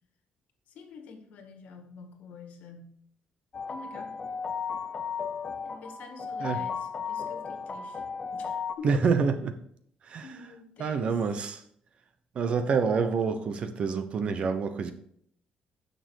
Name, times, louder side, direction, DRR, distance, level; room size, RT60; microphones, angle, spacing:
voice 1, 0.7-3.0 3.7-4.2 5.6-8.0 8.3-9.1 10.2-11.2, left 5 dB, 70° left, 6 dB, 1.8 m, -47 dB
sound 1, 3.5-8.7, left 6 dB, 30° left, 0.7 m, -35 dB
voice 2, 8.8-9.6 10.1-10.2 10.8-11.6 12.3-14.9, right 5 dB, 45° right, 9 dB, 1.0 m, -27 dB
9.8 x 6.8 x 4.7 m, 0.66 s
cardioid pair, 165°, 3 cm